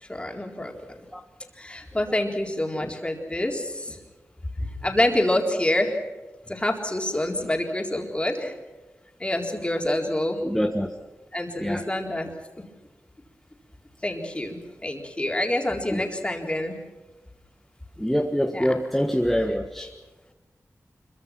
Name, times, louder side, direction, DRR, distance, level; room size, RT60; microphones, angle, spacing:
voice 1, 0.1-0.7 1.5-4.0 4.6-6.0 6.4-8.6 9.2-10.4 11.3-12.3 14.0-16.8 18.5-18.7, left 1 dB, 20° left, 1 dB, 4.1 m, -27 dB
voice 2, 10.4-10.9 11.6-11.8 15.9-16.1 18.0-19.9, equal, 5° left, 4 dB, 1.5 m, -25 dB
25.5 x 23.5 x 6.1 m, 1.2 s
wide cardioid pair, 75°, 6 cm